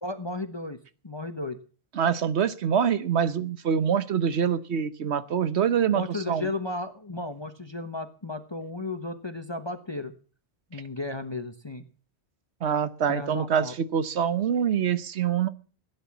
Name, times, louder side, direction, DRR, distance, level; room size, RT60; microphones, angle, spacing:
voice 1, 0.0-0.8 1.0-1.6 5.9-10.1 10.7-11.8 13.1-13.7, left 2 dB, 25° left, 8 dB, 1.1 m, -34 dB
voice 2, 1.9-6.5 12.6-15.5, right 8 dB, 90° right, 14 dB, 1.2 m, -25 dB
16.5 x 9.9 x 7.3 m, 0.40 s
omnidirectional pair, 1.1 m